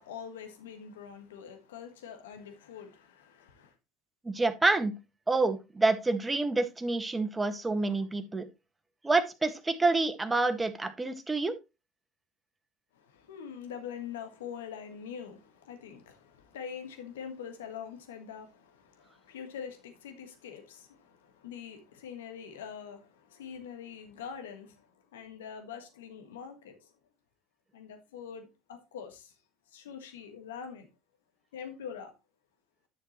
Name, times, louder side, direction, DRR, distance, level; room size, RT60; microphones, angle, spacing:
voice 1, 0.0-3.7 12.9-26.9 27.7-29.3 29.7-30.9 31.5-32.1, left 7 dB, 85° left, 1.5 m, -44 dB
voice 2, 4.2-4.9 5.3-8.4 9.0-11.5, right 3 dB, 15° right, 1.6 m, -28 dB
10.5 x 6.6 x 3.1 m
hypercardioid pair, 70°, 0 cm